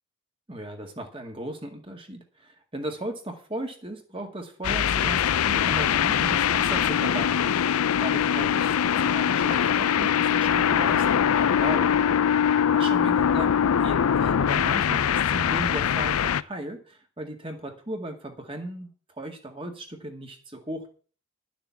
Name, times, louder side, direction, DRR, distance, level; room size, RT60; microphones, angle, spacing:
voice 1, 0.5-11.9 12.7-13.5 13.8-18.9 19.2-20.9, right 1 dB, 25° right, 4 dB, 2.0 m, -36 dB
sound 1, 4.6-16.4, left 8 dB, 90° left, 0.5 m, -22 dB
12.0 x 7.0 x 7.1 m, 0.41 s
head